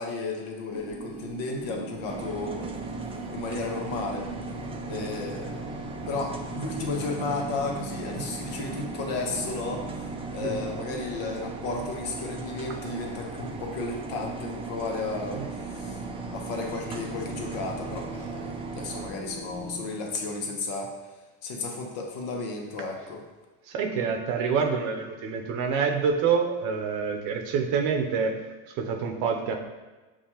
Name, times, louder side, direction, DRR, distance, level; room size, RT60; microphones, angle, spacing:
voice 1, 0.0-2.7 3.3-4.3 4.9-5.6 6.1-16.0 16.3-20.9 21.4-23.2, left 3 dB, 65° left, 1 dB, 1.0 m, -33 dB
sound 1, 0.7-19.9, right 1 dB, 35° left, 1.5 m, -40 dB
sound 2, 2.1-19.1, right 5 dB, 15° right, 0.4 m, -38 dB
voice 2, 23.7-28.3 28.7-29.6, right 6 dB, 65° right, 3 dB, 0.7 m, -27 dB
6.6 x 2.4 x 2.9 m, 1.2 s
supercardioid pair, 95°, 36 cm